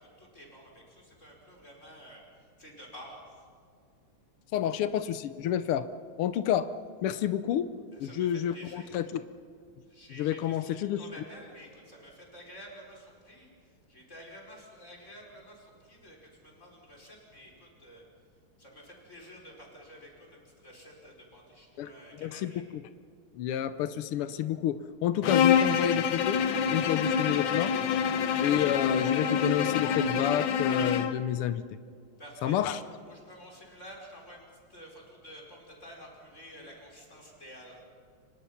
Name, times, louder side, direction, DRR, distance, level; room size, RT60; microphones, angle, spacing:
voice 1, 0.0-3.5 7.9-9.1 9.9-18.0 18.6-22.6 32.2-37.8, equal, 30° left, -1 dB, 5.7 m, -50 dB
voice 2, 4.5-5.9 6.2-6.7 7.0-7.7 8.0-9.2 10.2-11.0 21.8-21.9 22.2-22.5 23.3-26.4 26.7-27.7 28.4-31.6 32.4-32.8, left 11 dB, 85° left, 12 dB, 1.7 m, -29 dB
Bowed string instrument, 25.2-31.2, left 7 dB, 65° left, 1.7 m, -26 dB
29.0 x 24.5 x 5.8 m, 2.2 s
omnidirectional pair, 2.4 m